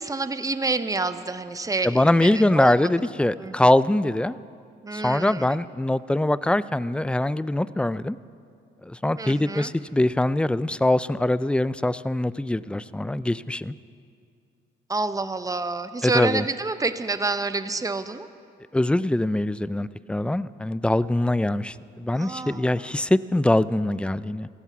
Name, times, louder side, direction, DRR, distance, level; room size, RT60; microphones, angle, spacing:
voice 1, 0.0-3.1 3.4-3.6 4.8-5.6 9.2-9.7 14.9-18.3 22.1-22.9, right 3 dB, 15° right, 11 dB, 0.8 m, -28 dB
voice 2, 1.8-4.4 4.9-8.2 8.8-13.7 16.0-16.4 18.7-24.5, left 1 dB, 5° left, 17 dB, 0.3 m, -23 dB
16.0 x 15.0 x 6.0 m, 2.3 s
cardioid pair, 90°, 20 cm